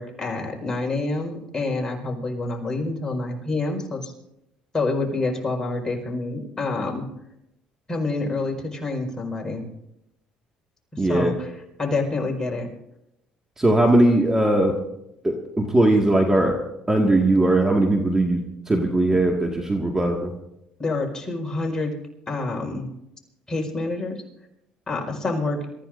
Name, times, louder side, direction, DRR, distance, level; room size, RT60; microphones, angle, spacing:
voice 1, 0.0-4.1 4.7-7.0 7.9-9.6 10.9-11.5 11.8-12.7 20.8-21.9 22.3-22.9 23.5-24.2 24.9-25.6, left 3 dB, 20° left, 0 dB, 5.1 m, -27 dB
voice 2, 11.0-11.3 13.6-14.8 15.2-16.6 16.9-20.3, right 1 dB, 15° right, 1 dB, 1.9 m, -19 dB
27.5 x 14.5 x 2.6 m, 0.84 s
supercardioid pair, 85°, 3 cm